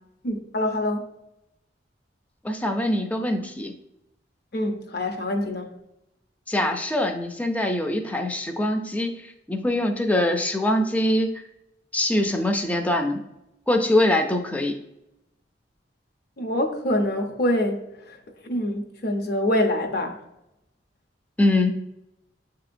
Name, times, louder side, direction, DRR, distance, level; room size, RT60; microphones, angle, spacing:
voice 1, 0.2-1.1 4.5-5.7 16.4-18.2 18.4-20.2, left 1 dB, 60° left, 4 dB, 0.7 m, -25 dB
voice 2, 2.4-3.7 6.5-9.1 9.5-11.3 11.9-13.2 13.7-14.8 21.4-21.7, left 1 dB, 10° left, 4 dB, 0.4 m, -23 dB
7.5 x 2.8 x 2.5 m, 0.88 s
head